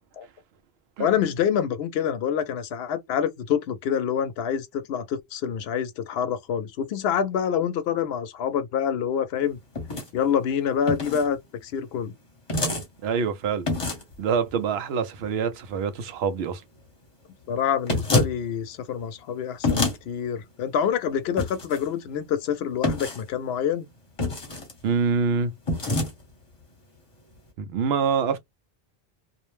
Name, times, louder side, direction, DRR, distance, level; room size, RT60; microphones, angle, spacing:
voice 1, 1.0-9.6 10.1-12.1 17.5-23.9, left 8 dB, 75° left, 0.8 m, -26 dB
sound 1, 9.7-10.1 10.9-11.3 12.5-12.8 13.7-14.1 17.9-18.3 19.6-20.0 21.4-21.8 22.8-23.2 24.2-24.7 25.7-26.1, left 2 dB, 30° left, 1.0 m, -26 dB
voice 2, 13.0-13.7 14.2-16.6 24.8-25.5 27.6-28.4, right 6 dB, 75° right, 0.8 m, -25 dB
2.5 x 2.0 x 3.0 m
omnidirectional pair, 1.1 m